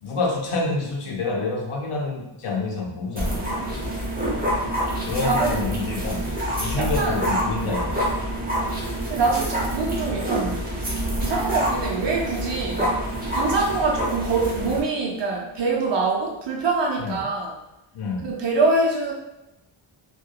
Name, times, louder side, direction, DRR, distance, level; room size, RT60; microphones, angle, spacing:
voice 1, 0.0-3.4 5.1-8.0 17.0-17.3 17.9-18.3, left 3 dB, 85° left, 0 dB, 0.7 m, -28 dB
sound 1, 3.1-14.8, right 1 dB, 20° right, 0.8 m, -27 dB
voice 2, 5.2-5.6 6.8-7.2 9.1-10.7 11.2-13.0 13.3-17.5 18.2-19.1, right 3 dB, 60° right, -1 dB, 0.7 m, -24 dB
2.7 x 2.3 x 2.2 m, 0.94 s
wide cardioid pair, 75°, 50 cm